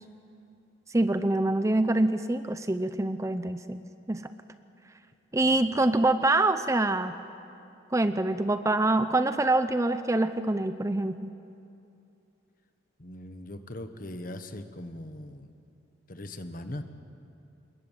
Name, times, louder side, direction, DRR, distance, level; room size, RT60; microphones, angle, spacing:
voice 1, 0.9-3.8 4.1-4.3 5.3-7.2 7.9-11.3, right 2 dB, 15° right, 11 dB, 0.6 m, -25 dB
voice 2, 13.0-15.6 16.1-16.8, left 1 dB, 45° left, 8 dB, 1.3 m, -40 dB
27.0 x 21.5 x 7.5 m, 2.7 s
head